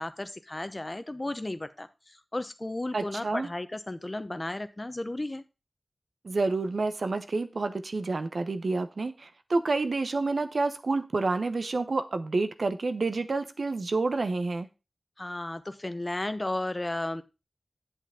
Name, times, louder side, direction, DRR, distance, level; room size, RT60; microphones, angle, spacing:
voice 1, 0.0-5.4 15.2-17.2, left 1 dB, 35° left, 11 dB, 0.8 m, -34 dB
voice 2, 2.9-3.5 6.2-14.7, right 3 dB, 80° right, 8 dB, 0.8 m, -29 dB
8.4 x 8.0 x 3.6 m, 0.28 s
wide cardioid pair, 50°, 0 cm